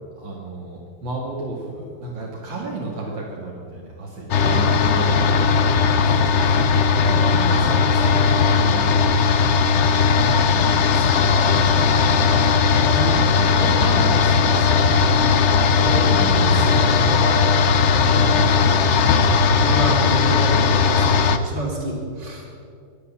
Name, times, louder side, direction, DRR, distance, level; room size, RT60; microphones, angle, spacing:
voice 1, 0.2-9.5 10.3-12.8 13.4-15.3 15.9-19.3, right 2 dB, 80° right, -4 dB, 2.7 m, -33 dB
sound 1, 4.3-21.4, left 5 dB, 55° left, 0.8 m, -17 dB
voice 2, 4.4-5.9 6.6-6.7 12.9-13.7 15.0-15.2 15.8-15.9 18.0-18.2 19.6-22.5, right 1 dB, 65° right, -1 dB, 3.6 m, -30 dB
22.0 x 8.4 x 7.2 m, 2.4 s
omnidirectional pair, 2.0 m